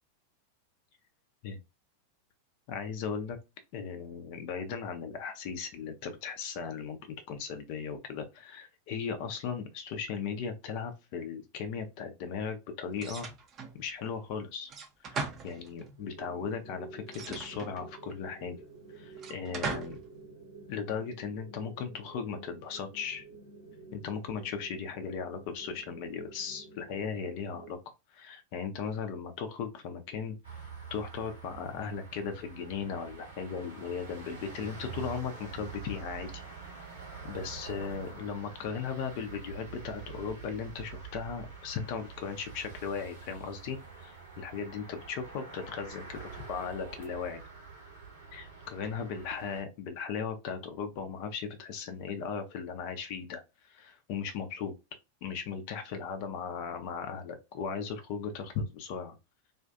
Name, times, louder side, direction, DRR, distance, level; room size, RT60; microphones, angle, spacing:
voice 1, 2.7-3.4 3.7-13.3 13.7-14.7 15.1-18.6 18.9-20.0 20.7-23.2 23.9-27.8 28.1-36.4 37.2-47.4 48.3-54.7 55.2-59.2, left 6 dB, 45° left, 0.5 m, -37 dB
sound 1, 13.0-13.8 14.7-16.0 17.1-18.1 19.2-20.1, right 4 dB, 30° right, 0.6 m, -39 dB
sound 2, 16.0-27.7, right 3 dB, 90° left, 0.8 m, -50 dB
sound 3, 30.4-49.6, right 5 dB, 70° right, 1.0 m, -46 dB
2.5 x 2.3 x 2.3 m
figure-of-eight pair, 90°, 0 cm